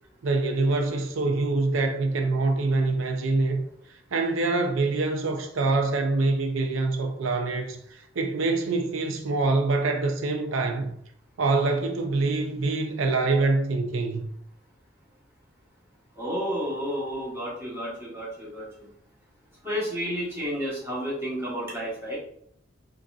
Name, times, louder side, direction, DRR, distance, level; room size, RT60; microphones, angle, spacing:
voice 1, 0.2-3.6 4.1-7.8 8.2-10.9 11.4-14.3, right 3 dB, 80° right, 0.5 m, -25 dB
voice 2, 16.2-18.7 19.6-22.2, equal, 15° right, 1.2 m, -31 dB
3.9 x 2.6 x 2.4 m
head